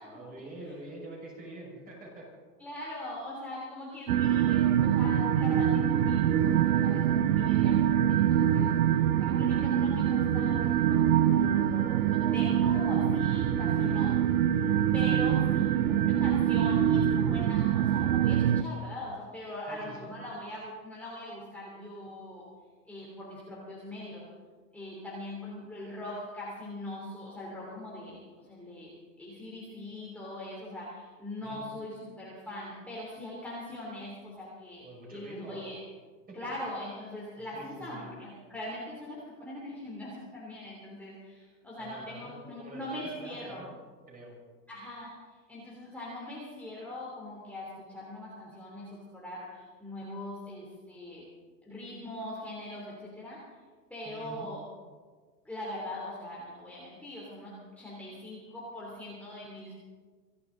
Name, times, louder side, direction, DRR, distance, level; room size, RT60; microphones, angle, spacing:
voice 1, 0.0-2.3 13.8-14.2 15.4-15.9 19.7-20.1 31.4-31.6 34.8-35.6 36.3-36.4 37.4-38.1 41.8-43.7 44.1-44.4 54.0-54.5, right 1 dB, 15° right, -2 dB, 5.9 m, -46 dB
voice 2, 2.6-8.7 9.2-14.1 14.9-22.4 22.9-24.2 24.7-28.9 29.2-35.8 36.3-43.6 44.7-51.3 51.6-53.4 53.9-54.6 55.4-59.8, left 1 dB, 5° left, -6 dB, 3.2 m, -41 dB
sound 1, 4.1-18.6, right 10 dB, 65° right, 0.9 m, -25 dB
26.0 x 11.5 x 4.0 m, 1.5 s
hypercardioid pair, 130°, 49 cm